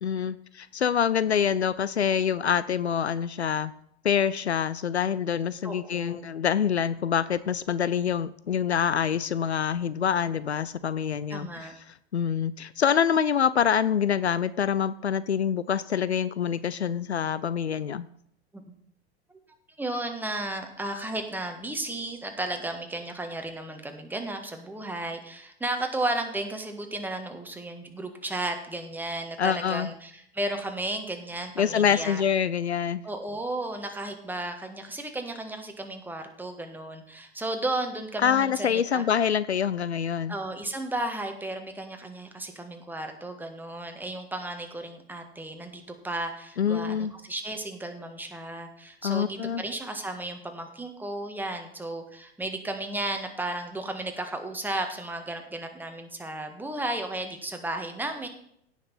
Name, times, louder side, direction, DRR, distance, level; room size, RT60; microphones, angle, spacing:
voice 1, 0.0-3.7 4.0-18.1 29.4-29.9 31.6-33.0 38.2-40.4 46.6-47.1 49.0-49.6, left 8 dB, 85° left, 16 dB, 0.5 m, -26 dB
voice 2, 5.6-6.2 11.3-11.7 19.8-32.2 33.0-39.0 40.3-58.3, right 2 dB, 5° right, 5 dB, 1.5 m, -34 dB
16.5 x 5.9 x 4.2 m, 0.70 s
figure-of-eight pair, 90°, 33 cm